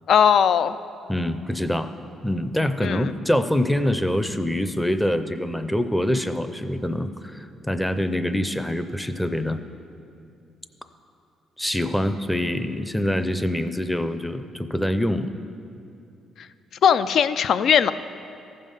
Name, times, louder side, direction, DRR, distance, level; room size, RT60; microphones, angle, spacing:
voice 1, 0.1-0.8 2.8-3.1 16.8-17.9, left 8 dB, 65° left, 13 dB, 0.3 m, -18 dB
voice 2, 1.1-1.9 2.2-9.6 11.6-15.3, left 1 dB, 5° left, 10 dB, 0.5 m, -25 dB
14.5 x 5.5 x 5.5 m, 2.6 s
cardioid pair, 90°, 0 cm